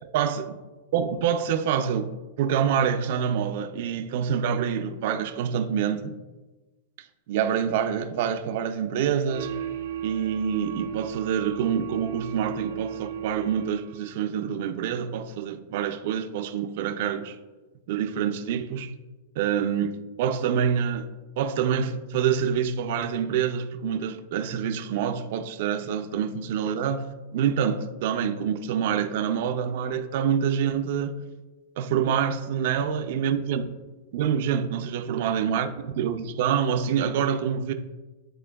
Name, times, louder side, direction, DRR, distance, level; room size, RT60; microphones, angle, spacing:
voice 1, 0.0-0.4 0.9-6.1 7.3-9.6 10.0-17.4 17.9-18.9 19.4-21.1 21.4-31.1 31.8-33.6 34.1-37.7, right 8 dB, 55° right, 0.5 m, -26 dB
sound 1, 9.3-14.1, right 9 dB, 85° right, 0.8 m, -35 dB
10.0 x 4.3 x 2.3 m
supercardioid pair, 155°, 0 cm